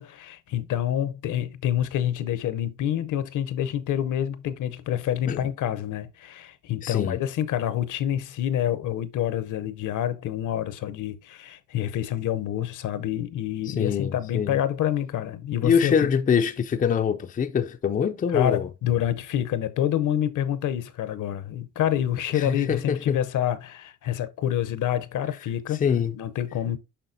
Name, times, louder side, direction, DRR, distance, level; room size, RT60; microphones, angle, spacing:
voice 1, 0.0-16.0 18.3-25.8 26.1-26.8, left 11 dB, 65° left, 0.7 m, -27 dB
voice 2, 6.8-7.2 13.7-14.6 15.6-18.7 22.3-23.2 25.8-26.1, left 7 dB, 25° left, 0.4 m, -24 dB
6.8 x 5.5 x 2.6 m
cardioid pair, 85°, 33 cm